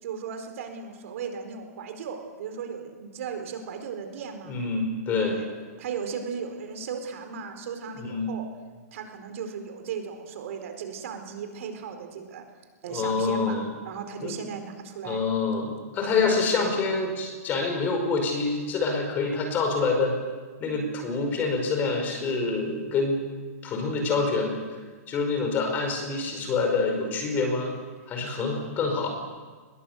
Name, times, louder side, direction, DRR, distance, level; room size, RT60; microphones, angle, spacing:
voice 1, 0.0-4.6 5.3-5.5 5.8-8.4 8.9-12.4 12.8-15.3 16.1-16.3, right 6 dB, 60° right, 6 dB, 4.5 m, -36 dB
voice 2, 4.4-5.4 8.0-8.3 12.9-13.7 14.2-14.4 15.0-20.1 20.6-23.2 23.6-27.8 28.1-29.1, left 4 dB, 20° left, 4 dB, 5.0 m, -26 dB
22.5 x 21.5 x 8.2 m, 1.4 s
hypercardioid pair, 160°, 9 cm